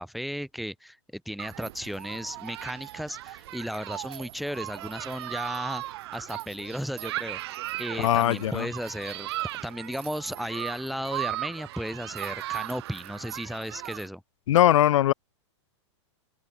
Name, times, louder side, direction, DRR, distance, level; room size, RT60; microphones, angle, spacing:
voice 1, 0.0-7.4 7.8-9.3 9.6-14.2, equal, ahead, 1.5 m, -35 dB
Human group actions, 1.4-14.1, right 16 dB, 55° right, 5.8 m, -37 dB
voice 2, 8.0-8.7 14.5-15.1, left 12 dB, 80° left, 0.5 m, -20 dB
open air
supercardioid pair, 155°, 16 cm